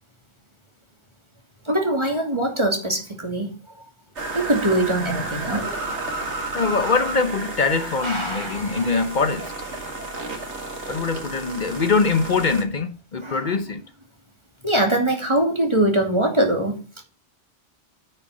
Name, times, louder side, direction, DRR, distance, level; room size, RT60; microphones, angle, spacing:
voice 1, 1.6-3.6 4.3-5.8 7.7-9.0 13.2-13.6 14.6-16.8, right 1 dB, 25° right, 2.6 m, -23 dB
sound 1, 4.2-12.6, right 2 dB, 80° right, 2.3 m, -32 dB
voice 2, 6.5-9.5 10.9-13.8, left 4 dB, 45° left, 0.9 m, -23 dB
9.4 x 5.8 x 8.1 m
omnidirectional pair, 1.2 m